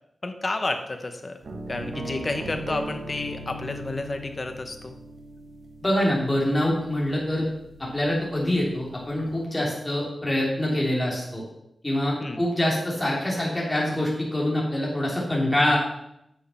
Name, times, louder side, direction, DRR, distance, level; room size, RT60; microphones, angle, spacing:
voice 1, 0.2-1.4 1.7-5.0 12.2-12.4, left 2 dB, 30° left, 6 dB, 1.0 m, -30 dB
sound 1, 1.4-9.3, right 1 dB, 60° right, 1.4 m, -40 dB
voice 2, 5.8-7.5 7.8-11.4 11.8-15.8, left 1 dB, 10° left, -4 dB, 2.9 m, -25 dB
8.9 x 6.5 x 5.6 m, 0.80 s
wide cardioid pair, 170°, 0 cm